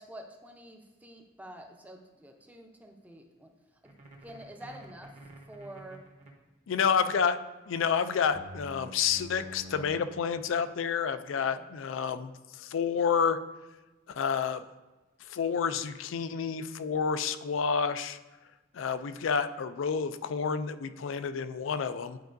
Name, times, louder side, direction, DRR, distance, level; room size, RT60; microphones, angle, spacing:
voice 1, 0.0-3.5 3.8-3.9 4.2-5.1 5.5-6.0 11.3-11.7, right 1 dB, 10° right, 3 dB, 0.6 m, -48 dB
sound 1, 3.9-6.3 8.3-9.9, equal, 40° right, 1.0 m, -47 dB
voice 2, 6.7-7.4 7.7-12.3 12.6-13.4 14.1-14.6 15.3-18.2 18.7-22.2, left 6 dB, 75° left, 12 dB, 0.4 m, -29 dB
10.5 x 4.6 x 2.6 m, 1.1 s
head